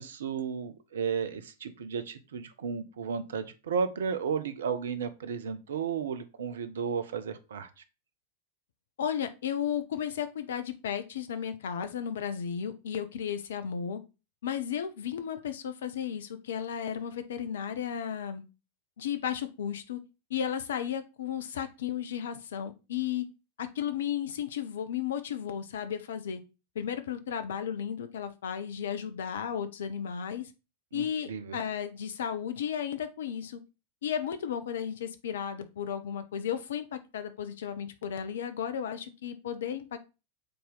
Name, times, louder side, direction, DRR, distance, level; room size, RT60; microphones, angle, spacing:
voice 1, 0.0-7.7 30.9-31.6, right 6 dB, 65° right, 12 dB, 0.8 m, -33 dB
voice 2, 9.0-14.0 14.4-18.4 19.0-20.0 20.3-23.3 23.6-26.4 26.7-30.5 30.9-33.6 34.0-40.0, left 8 dB, 60° left, 10 dB, 0.8 m, -34 dB
6.9 x 4.2 x 3.8 m, 0.29 s
figure-of-eight pair, 90°, 0 cm